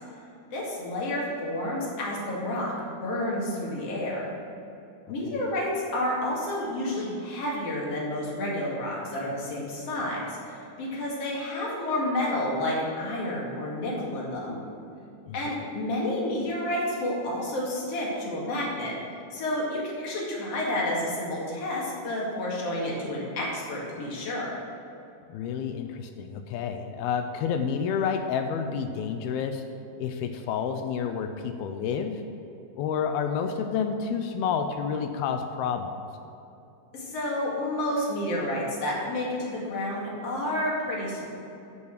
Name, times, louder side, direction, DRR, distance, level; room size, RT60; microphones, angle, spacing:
voice 1, 0.5-2.7 3.0-4.2 5.1-14.6 15.3-18.9 19.3-24.5 36.9-41.2, left 1 dB, 45° left, -4 dB, 2.9 m, -30 dB
voice 2, 25.3-29.6 30.0-32.2 32.8-35.9, left 7 dB, 85° left, 6 dB, 2.5 m, -29 dB
13.0 x 5.6 x 6.6 m, 2.8 s
omnidirectional pair, 4.3 m